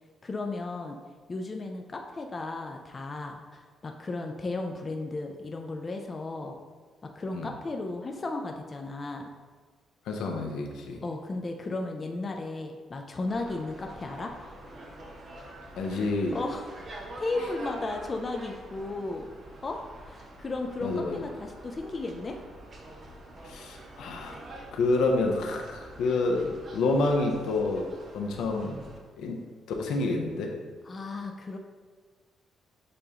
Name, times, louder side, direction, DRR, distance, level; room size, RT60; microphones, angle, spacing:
voice 1, 0.2-1.0 1.3-6.6 7.0-9.3 11.0-14.3 16.3-16.7 17.2-19.3 19.6-22.4 30.8-31.6, left 2 dB, 35° left, 3 dB, 0.4 m, -35 dB
voice 2, 10.1-11.0 15.8-16.4 20.8-21.2 23.4-24.4 24.7-27.9 28.1-28.9 29.2-29.4 29.8-30.5, left 3 dB, 80° left, 2 dB, 0.6 m, -28 dB
sound 1, 13.3-29.0, right 1 dB, 40° right, 0.7 m, -46 dB
6.7 x 2.5 x 2.9 m, 1.5 s
cardioid pair, 90°, 0 cm